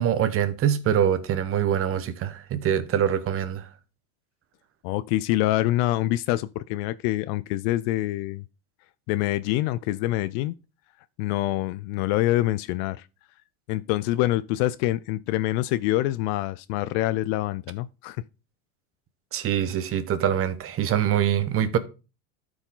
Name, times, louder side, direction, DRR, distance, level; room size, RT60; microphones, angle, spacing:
voice 1, 0.0-3.7 19.3-21.8, right 9 dB, 30° right, 1.0 m, -24 dB
voice 2, 4.8-8.4 9.1-10.5 11.2-13.0 13.7-18.2, left 16 dB, 50° left, 0.4 m, -25 dB
13.0 x 4.9 x 3.8 m
supercardioid pair, 120°, 43 cm